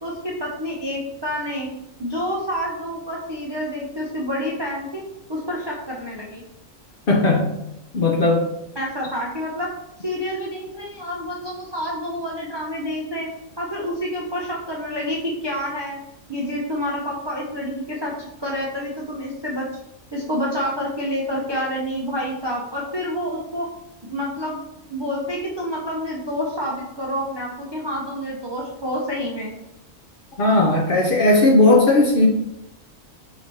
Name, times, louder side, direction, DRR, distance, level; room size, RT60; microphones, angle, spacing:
voice 1, 0.0-1.7 2.0-5.0 5.3-6.4 8.8-9.7 10.0-13.3 13.6-16.0 16.3-19.7 20.1-23.7 24.0-24.6 24.9-29.6, equal, 35° right, -3 dB, 0.4 m, -28 dB
voice 2, 7.1-7.6 7.9-8.5 30.4-32.3, left 2 dB, 55° left, 0 dB, 0.7 m, -16 dB
5.0 x 3.3 x 2.6 m, 0.87 s
omnidirectional pair, 1.3 m